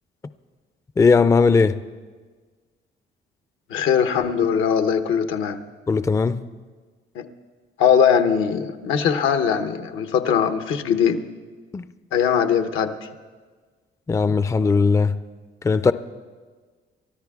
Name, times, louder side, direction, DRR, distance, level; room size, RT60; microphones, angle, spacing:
voice 1, 1.0-1.8 5.9-6.5 11.7-11.9 14.1-15.2 15.6-15.9, left 4 dB, 15° left, 0.3 m, -18 dB
voice 2, 3.7-5.6 7.2-7.3 7.8-11.2 12.1-12.9, left 7 dB, 85° left, 0.9 m, -20 dB
30.0 x 13.5 x 2.4 m
cardioid pair, 90°, 20 cm